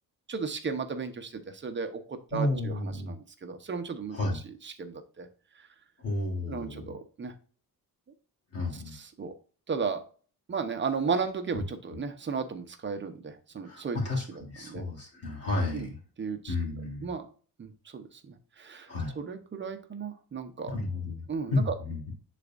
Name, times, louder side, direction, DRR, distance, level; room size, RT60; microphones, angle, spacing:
voice 1, 0.3-4.2 4.6-5.3 6.5-7.3 8.9-9.3 9.7-10.0 10.5-14.0 14.7-14.8 15.7-15.9 16.2-16.5 17.0-17.3 17.6-18.9 19.2-20.7 21.3-21.7, right 5 dB, 30° right, 7 dB, 0.9 m, -34 dB
voice 2, 2.3-3.1 4.1-4.4 6.0-6.9 8.5-8.9 11.5-11.6 13.6-16.0 16.5-17.1 18.9-19.2 20.7-21.2 21.5-22.1, left 2 dB, 40° left, -2 dB, 3.3 m, -32 dB
10.5 x 4.2 x 2.5 m, 0.40 s
cardioid pair, 160°, 38 cm